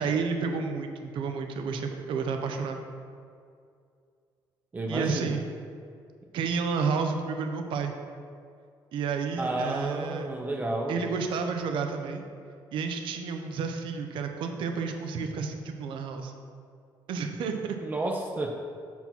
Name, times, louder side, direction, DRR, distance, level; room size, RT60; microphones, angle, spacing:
voice 1, 0.0-2.8 4.9-5.4 6.3-7.9 8.9-10.3 10.9-12.2 12.7-16.3 17.1-17.8, right 5 dB, 75° right, 5 dB, 0.7 m, -31 dB
voice 2, 4.7-5.4 9.4-11.1 17.8-18.6, right 2 dB, 20° right, 0 dB, 0.5 m, -31 dB
5.5 x 4.5 x 5.9 m, 2.3 s
cardioid pair, 120°, 9 cm